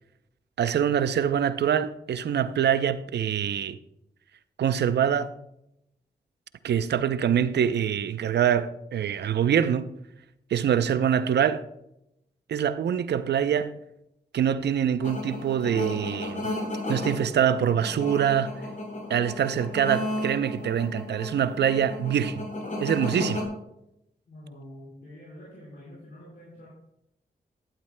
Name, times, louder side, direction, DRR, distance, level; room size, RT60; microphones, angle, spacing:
voice 1, 0.6-3.8 4.6-5.3 6.6-9.9 10.5-11.6 12.5-13.7 14.3-16.5 16.9-18.5 19.1-22.4 22.8-23.5, right 8 dB, 80° right, 0.6 m, -24 dB
sound 1, 15.0-23.4, left 1 dB, 50° left, 4.3 m, -34 dB
voice 2, 24.3-26.7, left 1 dB, 75° left, 4.5 m, -47 dB
13.5 x 11.5 x 2.2 m
cardioid pair, 50°, 17 cm